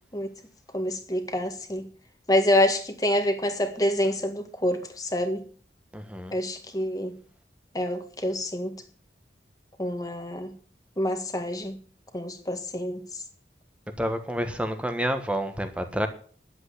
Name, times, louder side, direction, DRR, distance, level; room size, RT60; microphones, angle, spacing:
voice 1, 0.7-1.9 2.3-5.4 6.3-7.2 7.7-8.8 9.8-10.5 11.0-11.8 12.1-13.2, left 1 dB, 20° left, 1.9 m, -27 dB
voice 2, 5.9-6.3 14.0-16.1, equal, 5° right, 1.4 m, -29 dB
11.0 x 8.3 x 8.1 m
head